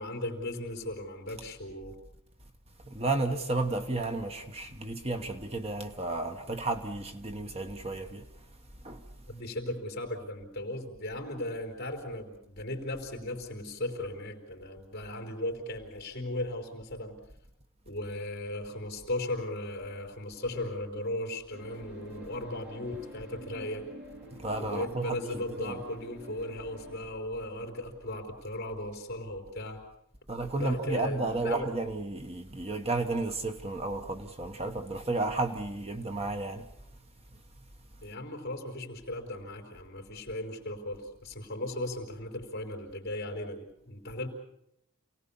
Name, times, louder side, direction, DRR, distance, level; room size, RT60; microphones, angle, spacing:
voice 1, 0.0-2.0 9.3-17.2 17.9-23.9 24.6-29.8 30.6-31.7 38.0-44.3, left 1 dB, 45° left, 4.0 m, -37 dB
voice 2, 2.8-8.2 8.8-9.0 24.4-25.8 30.3-36.7, right 2 dB, 25° right, 1.2 m, -32 dB
sound 1, 21.5-27.0, equal, 50° right, 7.0 m, -48 dB
28.0 x 18.5 x 7.1 m
head